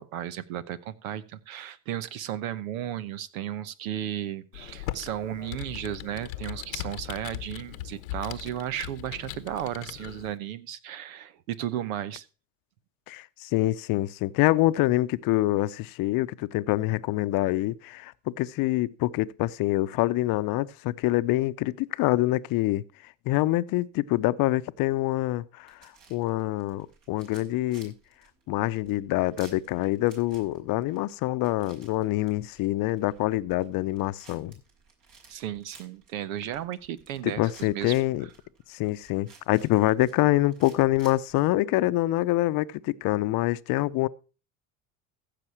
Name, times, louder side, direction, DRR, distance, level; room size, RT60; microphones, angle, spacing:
voice 1, 0.0-12.2 35.3-37.9, right 11 dB, 80° right, 1.0 m, -34 dB
Computer keyboard, 4.5-10.3, left 15 dB, 80° left, 1.0 m, -39 dB
voice 2, 13.1-27.9 28.5-34.6 37.2-38.3 38.7-44.1, left 17 dB, 55° left, 0.7 m, -26 dB
sound 1, 25.6-41.5, right 4 dB, 55° right, 5.0 m, -56 dB
15.0 x 6.9 x 4.5 m
hypercardioid pair, 80°, 41 cm